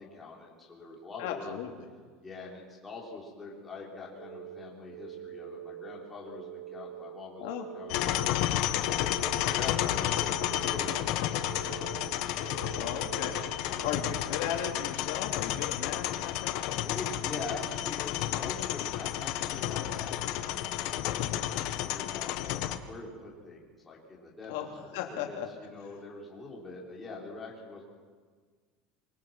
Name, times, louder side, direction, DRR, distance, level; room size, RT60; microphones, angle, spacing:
voice 1, 0.0-1.6 2.2-8.5 9.2-13.0 13.6-14.0 16.8-27.8, left 3 dB, 10° left, -4 dB, 5.1 m, -44 dB
voice 2, 1.2-1.9 7.4-7.7 12.8-13.4 13.8-16.9 24.5-25.5, left 9 dB, 75° left, 2 dB, 3.0 m, -36 dB
sound 1, 4.2-14.2, right 12 dB, 50° right, 2.2 m, -45 dB
sound 2, 7.9-22.8, left 13 dB, 55° left, 1.4 m, -31 dB
26.0 x 22.5 x 6.3 m, 1.6 s
cardioid pair, 170°, 0 cm